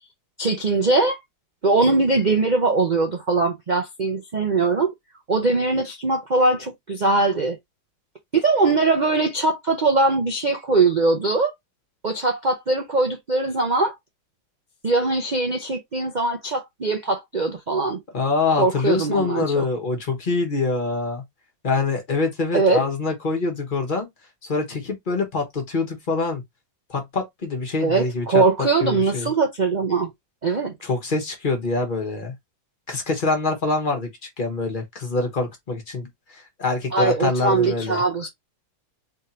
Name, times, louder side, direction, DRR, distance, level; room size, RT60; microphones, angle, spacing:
voice 1, 0.4-1.2 1.6-4.9 5.3-7.6 8.3-11.5 12.0-13.9 14.8-18.0 18.6-19.7 22.5-22.8 27.8-30.1 30.4-30.7 36.9-38.3, right 3 dB, 85° right, 0.4 m, -21 dB
voice 2, 18.1-21.2 21.6-24.1 24.4-26.4 26.9-28.4 28.8-29.3 30.8-32.3 32.9-34.1 34.4-38.0, left 3 dB, 30° left, 1.2 m, -25 dB
3.6 x 3.5 x 2.8 m
omnidirectional pair, 2.0 m